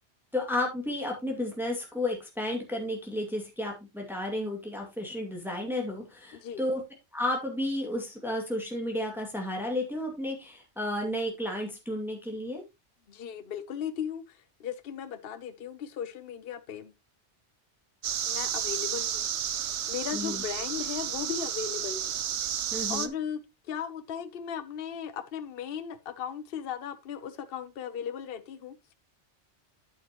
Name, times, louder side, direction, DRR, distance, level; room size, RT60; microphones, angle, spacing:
voice 1, 0.3-6.8 7.1-12.6 20.1-20.4 22.7-23.1, left 1 dB, ahead, 2.2 m, -32 dB
voice 2, 6.3-6.6 13.1-16.9 18.2-22.2 22.6-28.9, left 8 dB, 60° left, 0.9 m, -37 dB
sound 1, 18.0-23.1, right 9 dB, 75° right, 1.1 m, -32 dB
8.8 x 8.7 x 2.9 m
omnidirectional pair, 1.2 m